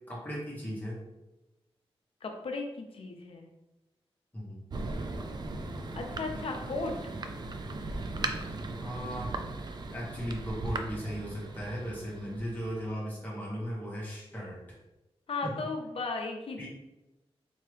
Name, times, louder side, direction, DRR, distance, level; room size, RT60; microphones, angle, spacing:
voice 1, 0.1-1.0 4.3-4.6 8.8-9.3 9.9-14.8 15.4-15.5 16.6-16.7, equal, 15° left, -5 dB, 1.3 m, -37 dB
voice 2, 2.2-3.5 6.0-7.0 15.3-16.7, left 3 dB, 65° left, 3 dB, 0.6 m, -35 dB
Thunder, 4.7-13.0, right 2 dB, 45° right, 0.4 m, -38 dB
4.4 x 2.8 x 3.3 m, 0.99 s
wide cardioid pair, 170°, 10 cm